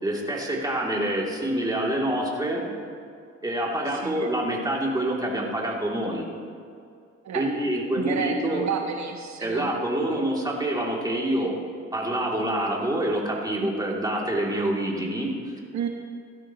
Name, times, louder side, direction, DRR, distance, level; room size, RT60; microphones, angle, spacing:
voice 1, 0.0-2.6 3.4-6.3 7.3-8.7 9.4-11.6 11.9-15.3, right 1 dB, 15° right, -3 dB, 2.9 m, -26 dB
voice 2, 3.9-4.3 7.2-7.5 8.0-9.7 15.7-15.9, right 7 dB, 65° right, 3 dB, 1.1 m, -31 dB
17.0 x 12.5 x 3.1 m, 2.4 s
cardioid pair, 90°, 30 cm